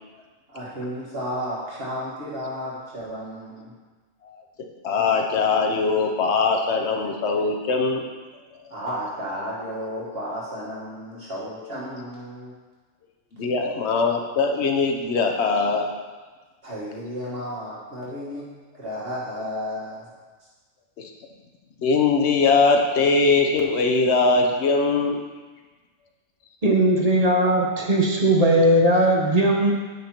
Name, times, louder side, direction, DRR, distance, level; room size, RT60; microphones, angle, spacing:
voice 1, 0.5-3.7 8.7-12.5 16.6-18.5 18.8-20.1, equal, 55° right, -8 dB, 1.9 m, -33 dB
voice 2, 4.8-8.0 8.6-8.7 13.4-15.9 21.0-21.1 21.8-25.2, left 4 dB, 65° left, 2 dB, 1.1 m, -21 dB
voice 3, 26.6-29.7, right 1 dB, 35° right, -1 dB, 1.1 m, -18 dB
9.5 x 5.5 x 4.4 m, 1.3 s
omnidirectional pair, 1.2 m